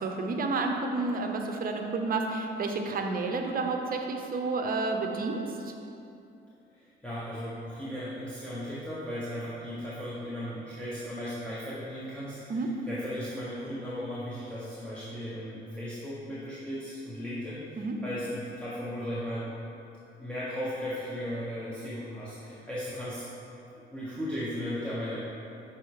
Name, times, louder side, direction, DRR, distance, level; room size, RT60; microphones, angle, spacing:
voice 1, 0.0-5.7 12.5-12.7 17.8-18.0, right 3 dB, 45° right, 3 dB, 0.7 m, -30 dB
voice 2, 6.7-19.5 20.2-23.3 23.9-25.2, equal, 5° left, -10 dB, 1.1 m, -36 dB
6.1 x 4.2 x 4.7 m, 2.7 s
cardioid pair, 90°, 20 cm